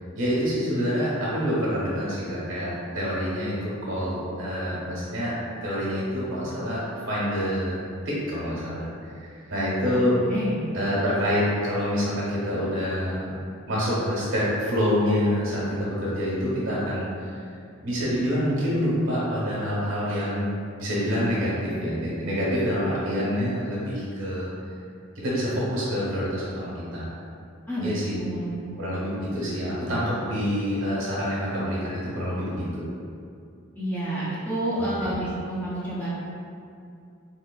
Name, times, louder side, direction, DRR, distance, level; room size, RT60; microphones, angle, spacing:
voice 1, 0.1-5.4 5.6-10.2 10.7-13.3 13.7-17.4 17.8-20.5 20.7-24.5 25.1-27.1 27.8-28.2 28.8-32.8 34.8-35.1, equal, 80° right, -7 dB, 1.3 m, -27 dB
voice 2, 27.7-28.5 33.8-36.1, right 1 dB, 10° left, -9 dB, 0.5 m, -29 dB
3.9 x 3.2 x 2.2 m, 2.4 s
head